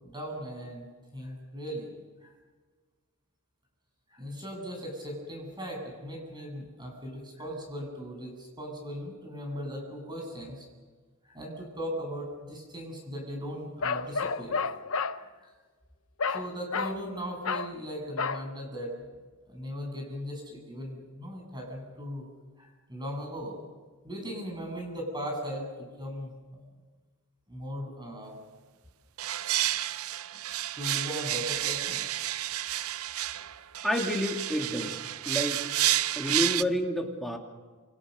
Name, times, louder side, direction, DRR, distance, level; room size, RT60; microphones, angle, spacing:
voice 1, 0.0-1.9 2.2-2.3 4.1-10.7 11.2-14.6 15.1-15.5 16.3-19.0 19.5-22.3 22.6-23.6 24.0-26.3 27.5-28.4 30.3-30.4 30.7-32.1, equal, 20° right, 1 dB, 8.0 m, -38 dB
Bark, 13.8-15.2 16.2-16.5 16.7-17.0 17.4-17.7 18.2-18.4, left 5 dB, 65° left, 0.9 m, -30 dB
sound 1, 29.2-36.6, right 13 dB, 70° right, 0.7 m, -30 dB
voice 2, 33.8-35.0 35.3-35.6 36.2-37.4, equal, ahead, 1 dB, 3.0 m, -29 dB
28.0 x 28.0 x 6.8 m, 1.4 s
head